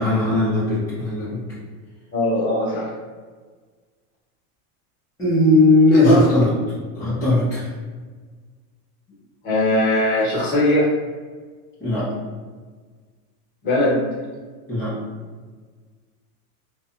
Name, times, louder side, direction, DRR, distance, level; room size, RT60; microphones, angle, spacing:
voice 1, 0.0-1.4 5.2-6.5 6.9-7.7 11.8-12.1 14.7-14.9, left 2 dB, 5° left, -14 dB, 0.3 m, -18 dB
voice 2, 2.1-2.9 6.0-6.2 9.4-10.9 13.6-14.0, left 1 dB, 25° left, -5 dB, 0.8 m, -20 dB
2.7 x 2.1 x 2.3 m, 1.5 s
supercardioid pair, 145°, 46 cm